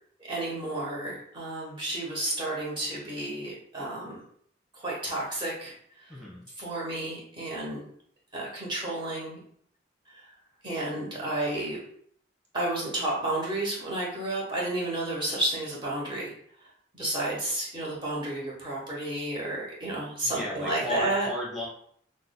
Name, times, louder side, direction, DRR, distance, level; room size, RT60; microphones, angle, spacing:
voice 1, 0.3-4.2 4.7-5.7 6.0-6.1 6.6-7.8 8.3-9.4 10.1-10.3 10.6-11.8 12.5-16.3 16.9-21.3, right 1 dB, 25° right, -4 dB, 1.1 m, -31 dB
voice 2, 6.1-6.4 20.2-21.7, left 1 dB, ahead, -6 dB, 1.1 m, -34 dB
5.8 x 2.1 x 2.2 m, 0.64 s
head